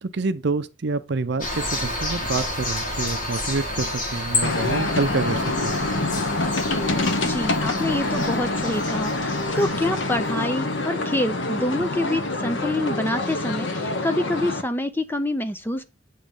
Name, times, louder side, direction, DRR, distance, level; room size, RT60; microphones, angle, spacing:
voice 1, 0.0-5.7, right 3 dB, 60° right, 0.6 m, -27 dB
sound 1, 1.4-10.6, left 1 dB, 45° left, 1.6 m, -30 dB
sound 2, 4.4-14.6, left 2 dB, 70° left, 1.0 m, -26 dB
voice 2, 7.2-15.8, left 1 dB, 10° left, 0.6 m, -26 dB
8.7 x 3.1 x 5.3 m
head